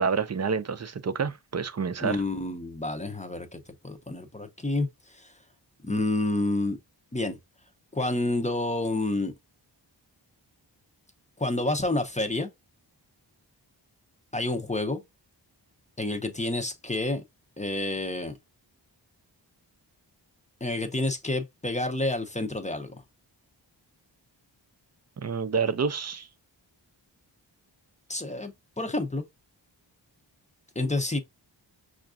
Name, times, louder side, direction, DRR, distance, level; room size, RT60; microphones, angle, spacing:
voice 1, 0.0-2.2 25.2-26.3, right 5 dB, 35° right, 0.5 m, -28 dB
voice 2, 2.0-4.9 5.1-5.3 5.8-6.8 7.1-7.4 7.9-9.3 11.4-12.5 14.3-15.0 16.0-17.2 17.6-18.4 20.6-22.9 28.1-29.3 30.8-31.2, left 2 dB, 15° left, 0.6 m, -29 dB
5.7 x 2.5 x 2.4 m
cardioid pair, 55°, 45 cm